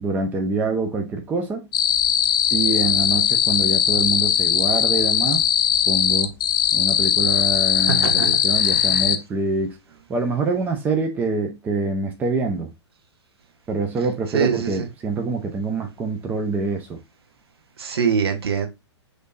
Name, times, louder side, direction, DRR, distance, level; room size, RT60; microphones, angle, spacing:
voice 1, 0.0-1.7 2.5-5.4 5.9-6.3 6.7-9.8 10.1-12.7 13.7-17.0, right 3 dB, 10° right, 0.5 m, -25 dB
sound 1, 1.7-9.2, left 9 dB, 45° left, 0.5 m, -19 dB
voice 2, 7.9-9.0 14.3-14.9 17.8-18.7, right 7 dB, 55° right, 0.8 m, -24 dB
6.3 x 2.6 x 2.5 m
figure-of-eight pair, 115°, 15 cm